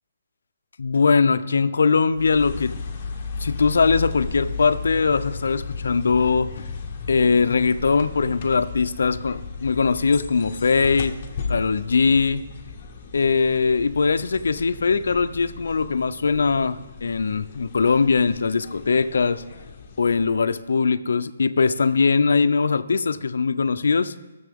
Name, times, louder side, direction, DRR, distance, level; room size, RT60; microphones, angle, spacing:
voice 1, 0.8-2.7 3.4-6.5 7.1-11.2 11.5-12.5 13.1-19.4 20.0-24.1, left 5 dB, 75° left, 11 dB, 0.6 m, -21 dB
sound 1, 2.1-20.6, left 4 dB, 25° left, 1.2 m, -35 dB
18.5 x 6.9 x 3.6 m, 1.1 s
hypercardioid pair, 170°, 0 cm